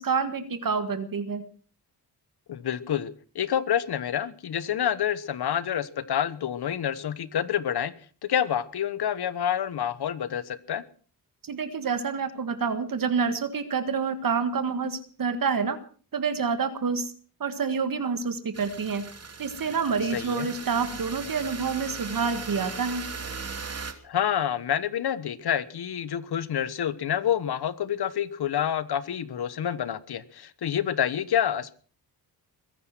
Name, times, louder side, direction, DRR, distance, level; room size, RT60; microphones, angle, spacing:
voice 1, 0.0-1.4 11.4-15.8 16.1-17.1 17.4-19.0 19.4-23.0, right 5 dB, 55° right, 10 dB, 1.7 m, -28 dB
voice 2, 2.5-7.9 8.2-10.8 20.1-20.5 24.0-31.8, left 9 dB, 75° left, 16 dB, 1.2 m, -28 dB
sound 1, 18.5-23.9, right 5 dB, 40° right, 2.7 m, -38 dB
22.5 x 10.0 x 6.1 m, 0.42 s
cardioid pair, 85°, 40 cm